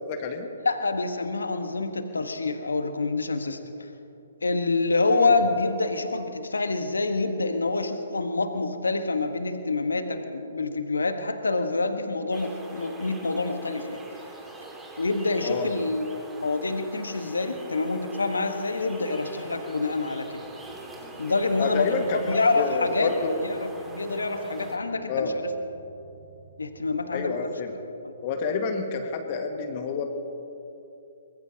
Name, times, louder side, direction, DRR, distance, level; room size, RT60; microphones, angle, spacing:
voice 1, 0.1-0.5 5.1-5.3 15.4-15.7 21.6-23.4 25.1-25.4 27.1-27.7 28.2-30.0, left 4 dB, 40° left, 4 dB, 1.7 m, -29 dB
voice 2, 0.6-3.9 4.4-14.0 15.0-20.4 21.2-23.1 23.4-25.3 26.6-27.5 28.0-28.1, left 3 dB, 80° left, 7 dB, 1.3 m, -27 dB
sound 1, 12.3-24.8, right 2 dB, 10° right, 2.1 m, -43 dB
sound 2, 19.1-27.1, right 1 dB, 85° right, 4.4 m, -52 dB
24.0 x 20.5 x 2.9 m, 2.7 s
figure-of-eight pair, 130°, 0 cm